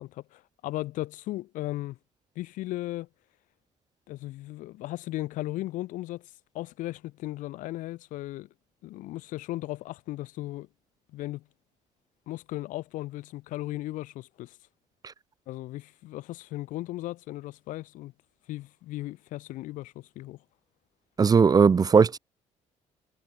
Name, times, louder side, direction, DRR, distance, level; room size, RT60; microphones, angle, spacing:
voice 1, 0.0-2.0 2.4-3.1 4.1-8.5 8.8-10.7 11.1-11.4 12.3-14.6 15.5-18.1 18.5-20.4, left 17 dB, 85° left, 5.3 m, -36 dB
voice 2, 21.2-22.2, right 5 dB, 30° right, 0.7 m, -18 dB
cardioid pair, 105°, 13 cm